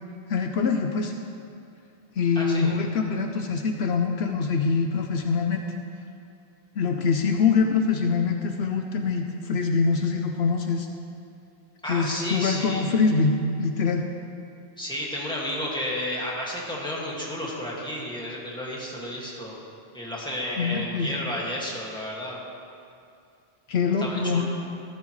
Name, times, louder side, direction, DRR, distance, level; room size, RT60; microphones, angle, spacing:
voice 1, 0.3-1.1 2.2-5.6 6.8-10.9 11.9-14.1 20.6-21.1 23.7-24.4, left 5 dB, 75° left, 4 dB, 1.0 m, -24 dB
voice 2, 2.4-2.7 11.8-13.0 14.8-19.6 19.9-22.4 24.0-24.4, left 1 dB, 5° left, -5 dB, 2.0 m, -32 dB
14.0 x 14.0 x 3.2 m, 2.5 s
omnidirectional pair, 1.1 m